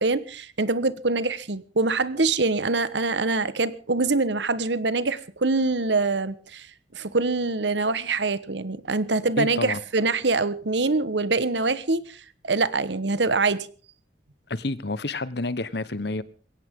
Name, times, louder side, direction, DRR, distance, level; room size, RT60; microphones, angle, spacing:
voice 1, 0.0-6.7 6.9-13.7, right 3 dB, 75° right, 16 dB, 1.3 m, -24 dB
voice 2, 9.4-9.8 14.5-16.2, left 2 dB, 65° left, 17 dB, 1.2 m, -29 dB
21.5 x 17.5 x 3.7 m, 0.39 s
head